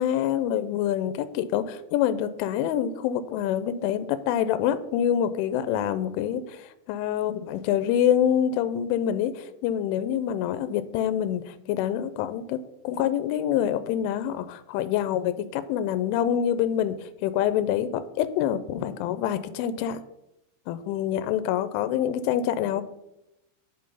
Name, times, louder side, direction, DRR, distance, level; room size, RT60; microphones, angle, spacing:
voice 1, 0.0-20.0 20.7-22.8, left 10 dB, 85° left, 12 dB, 3.1 m, -26 dB
9.8 x 8.2 x 5.5 m, 0.88 s
omnidirectional pair, 5.6 m